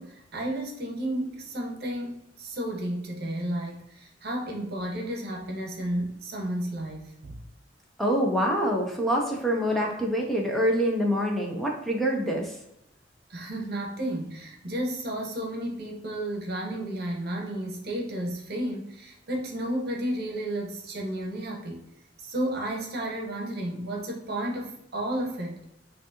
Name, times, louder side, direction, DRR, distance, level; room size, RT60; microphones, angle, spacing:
voice 1, 0.0-7.4 13.3-21.8 22.2-25.6, right 1 dB, 55° right, 1.0 m, -32 dB
voice 2, 8.0-12.5, equal, ahead, 0.6 m, -25 dB
5.8 x 2.7 x 2.8 m
head